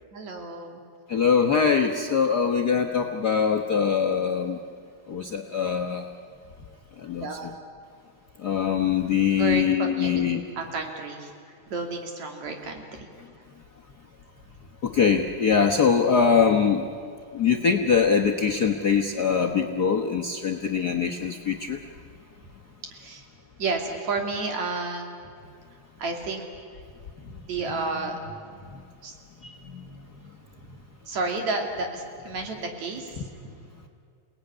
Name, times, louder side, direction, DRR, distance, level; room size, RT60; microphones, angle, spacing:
voice 1, 0.1-0.8 7.2-7.5 9.3-10.2 10.6-11.3 11.7-13.1 22.9-23.2 23.6-25.2 26.0-26.5 27.5-28.2 29.0-29.2 31.1-33.2, right 3 dB, 70° right, 3 dB, 4.0 m, -31 dB
voice 2, 1.1-4.6 5.1-6.0 7.0-7.3 8.4-10.4 14.8-16.8 17.3-21.8, left 6 dB, 50° left, 1 dB, 1.2 m, -22 dB
29.0 x 19.0 x 9.7 m, 2.3 s
omnidirectional pair, 3.3 m